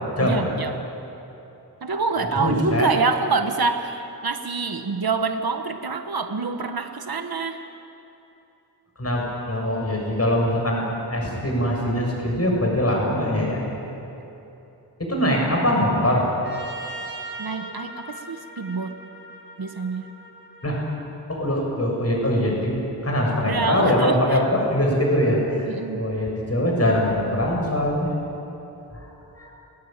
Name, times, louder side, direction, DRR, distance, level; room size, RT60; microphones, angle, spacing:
voice 1, 0.2-0.8 1.8-7.6 17.4-19.0 19.6-20.1 23.3-24.4 25.7-26.1, right 4 dB, 60° right, 6 dB, 1.6 m, -26 dB
voice 2, 2.4-2.9 9.0-10.9 11.1-13.6 15.0-16.3 20.6-20.8 21.3-25.7 26.0-28.1 28.9-29.1 29.3-29.5, left 1 dB, 35° left, -1 dB, 6.9 m, -22 dB
Trumpet, 16.4-21.0, right 2 dB, 30° right, 4.9 m, -39 dB
29.5 x 20.0 x 9.1 m, 2.9 s
wide cardioid pair, 90°, 41 cm